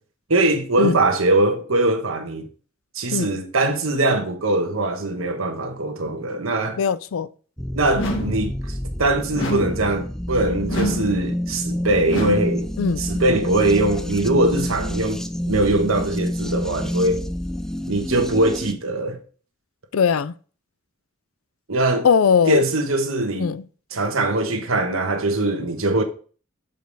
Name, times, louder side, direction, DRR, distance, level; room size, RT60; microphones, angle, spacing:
voice 1, 0.3-2.5 2.9-6.8 7.7-12.7 13.0-15.2 15.5-17.2 17.9-19.2 21.7-22.1 22.5-23.5 23.9-26.0, right 2 dB, 80° right, 1.2 m, -21 dB
voice 2, 6.8-7.3 12.8-13.0 19.9-20.3 22.0-22.6 23.4-23.6, left 6 dB, 85° left, 0.4 m, -19 dB
sound 1, 7.6-18.7, equal, 5° left, 0.3 m, -28 dB
sound 2, 7.9-8.5 9.3-9.9 10.7-11.2 12.1-12.6, equal, 65° left, 1.5 m, -27 dB
6.8 x 5.2 x 4.0 m
head